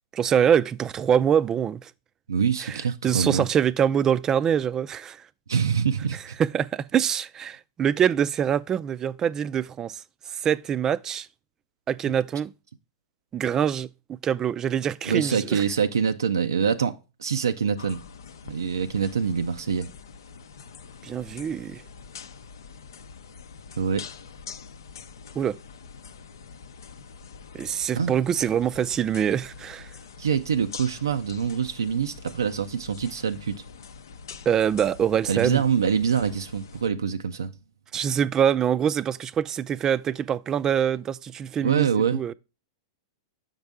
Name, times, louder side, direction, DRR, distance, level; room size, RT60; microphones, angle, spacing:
voice 1, 0.1-1.9 2.6-5.2 6.4-10.0 10.3-11.3 11.9-12.5 13.3-15.6 21.0-21.8 25.4-25.6 27.5-29.9 34.5-35.6 37.9-41.9 42.1-42.3, right 8 dB, 25° right, 0.3 m, -24 dB
voice 2, 2.3-3.5 5.5-6.4 15.1-18.0 18.5-19.9 23.8-24.1 28.0-28.1 30.2-33.6 35.3-37.5 41.6-42.2, right 7 dB, 90° right, 0.4 m, -25 dB
sound 1, 17.8-36.9, left 6 dB, 80° left, 0.6 m, -45 dB
7.1 x 5.4 x 3.5 m
hypercardioid pair, 110°, 2 cm